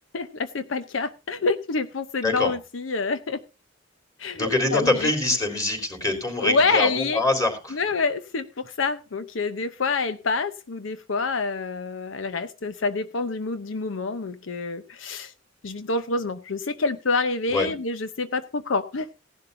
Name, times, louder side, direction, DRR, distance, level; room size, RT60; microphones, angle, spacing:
voice 1, 0.1-3.4 4.2-5.1 6.4-7.2 7.7-15.3 15.6-19.1, left 4 dB, 80° left, 11 dB, 0.7 m, -27 dB
voice 2, 4.4-7.8 17.5-17.7, left 2 dB, 20° left, 2 dB, 3.7 m, -24 dB
17.5 x 11.0 x 2.6 m, 0.28 s
head